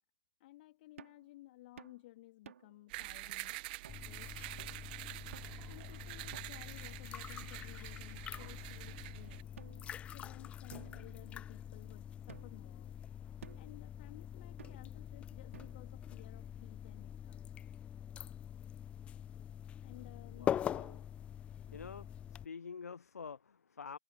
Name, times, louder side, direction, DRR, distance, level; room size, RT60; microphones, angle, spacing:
voice 1, 0.4-3.6 4.0-4.6 5.6-9.6 10.1-12.9 13.6-17.6 19.8-20.6 21.7-22.1, left 17 dB, 35° left, 3.4 m, -57 dB
sound 1, 1.0-1.3 1.8-2.0 2.5-2.8 3.3-3.4 3.8-4.1 4.6-4.9 5.3-5.7 6.3-6.8 7.4-8.1 8.9-9.0 9.6-10.3 10.7-11.8 12.3-12.7 13.4-13.8 14.6-15.0 15.5-16.0, right 8 dB, 55° right, 3.1 m, -56 dB
sound 2, 2.9-9.4, right 21 dB, 30° right, 1.6 m, -47 dB
sound 3, 3.9-22.5, left 9 dB, 15° left, 0.7 m, -44 dB
voice 2, 20.4-21.1 21.7-22.1 22.4-24.0, left 5 dB, 65° left, 1.4 m, -47 dB
figure-of-eight pair, 125°, 9 cm